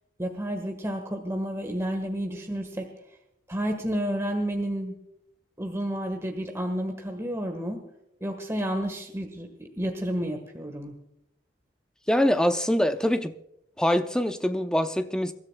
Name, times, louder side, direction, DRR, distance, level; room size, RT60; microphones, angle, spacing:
voice 1, 0.2-2.9 3.5-5.0 5.6-7.8 8.2-10.9, equal, 15° right, 1.4 m, -30 dB
voice 2, 12.1-13.3 13.8-15.3, equal, 5° left, 0.6 m, -24 dB
27.5 x 13.0 x 2.2 m
head